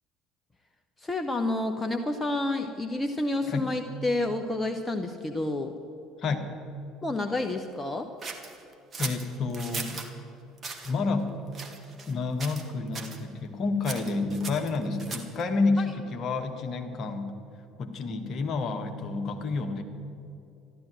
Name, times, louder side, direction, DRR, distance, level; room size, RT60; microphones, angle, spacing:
voice 1, 1.0-5.7 7.0-8.1 15.8-15.9, left 2 dB, 20° left, 5 dB, 1.0 m, -29 dB
voice 2, 6.2-6.5 9.0-9.9 10.8-11.3 12.0-17.4 17.8-19.8, left 3 dB, 45° left, 4 dB, 1.7 m, -29 dB
sound 1, 8.2-10.1 10.6-10.9 11.5-12.1 12.4-12.7 12.9-13.2 13.8-15.4, right 4 dB, 30° right, 2.0 m, -38 dB
13.5 x 12.0 x 7.7 m, 2.7 s
figure-of-eight pair, 60°, 0 cm